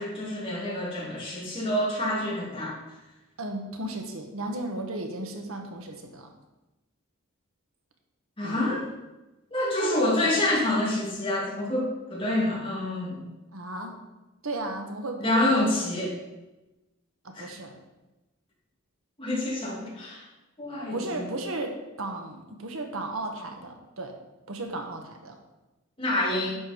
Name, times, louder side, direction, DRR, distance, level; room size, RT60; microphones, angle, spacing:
voice 1, 0.0-2.8 8.4-8.8 9.5-13.3 15.2-16.2 17.3-17.5 19.2-20.3 20.6-21.2 26.0-26.6, left 1 dB, 25° left, -5 dB, 3.0 m, -27 dB
voice 2, 3.4-6.3 8.4-8.6 9.8-10.3 13.5-14.0 14.4-15.6 17.2-17.8 20.9-24.2 24.5-25.4, right 2 dB, 75° right, 3 dB, 1.4 m, -34 dB
10.5 x 6.9 x 4.6 m, 1.0 s
head